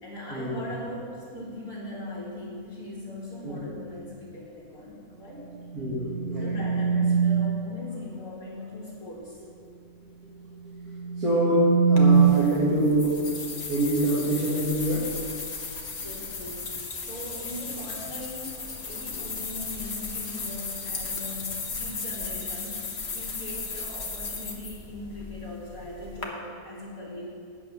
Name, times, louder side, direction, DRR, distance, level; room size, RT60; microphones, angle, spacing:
voice 1, 0.0-5.5 6.4-9.4 15.6-15.7 16.0-22.9 23.1-27.2, left 1 dB, 65° left, -7 dB, 2.4 m, -40 dB
sound 1, 5.4-7.7 10.7-12.2, right 5 dB, 30° left, 1.4 m, -23 dB
voice 2, 5.7-6.6 11.2-13.1 13.7-15.1, right 1 dB, 85° right, -9 dB, 2.4 m, -25 dB
sound 2, 12.0-26.3, left 4 dB, 50° left, 1.4 m, -36 dB
8.9 x 8.3 x 6.0 m, 2.3 s
omnidirectional pair, 1.5 m